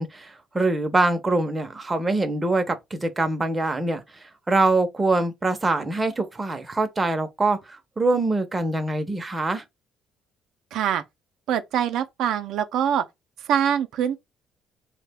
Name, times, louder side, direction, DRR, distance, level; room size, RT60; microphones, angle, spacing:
voice 1, 0.0-9.6, right 2 dB, 15° right, 0.6 m, -24 dB
voice 2, 10.7-11.0 11.5-13.0 13.5-14.2, right 9 dB, 70° right, 0.3 m, -24 dB
3.2 x 2.1 x 3.4 m
cardioid pair, 130°, 0 cm